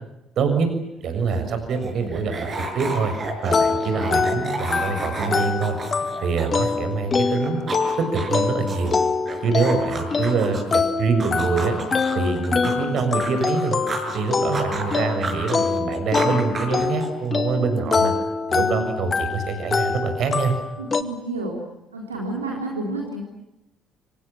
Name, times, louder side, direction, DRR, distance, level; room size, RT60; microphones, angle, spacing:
voice 1, 0.4-0.7 1.0-3.1 3.4-5.8 6.2-7.7 8.0-8.9 9.4-11.7 12.1-13.8 14.1-18.1 18.5-20.5, right 5 dB, 55° right, 8 dB, 6.7 m, -25 dB
sound 1, 1.1-7.0 7.3-10.8 11.2-14.2 14.5-17.3, right 2 dB, 40° right, 7.3 m, -32 dB
sound 2, 3.5-21.0, left 4 dB, 35° left, 2.1 m, -25 dB
voice 2, 18.6-18.9 20.8-21.6 21.9-23.2, right 2 dB, 85° right, 0 dB, 3.9 m, -30 dB
29.5 x 26.0 x 7.3 m, 0.89 s
figure-of-eight pair, 50°, 0 cm